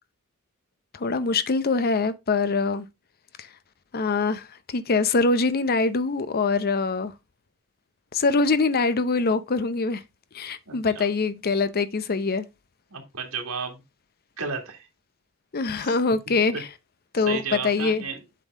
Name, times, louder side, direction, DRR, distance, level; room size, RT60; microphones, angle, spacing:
voice 1, 0.9-2.9 3.9-7.1 8.1-10.0 10.3-12.4 15.5-16.7 17.1-18.0, left 4 dB, 45° left, 0.6 m, -24 dB
voice 2, 10.7-11.0 12.9-13.8 14.4-14.9 15.8-15.9 16.5-16.6 17.3-18.2, right 5 dB, 70° right, 2.2 m, -33 dB
7.6 x 5.5 x 3.6 m
head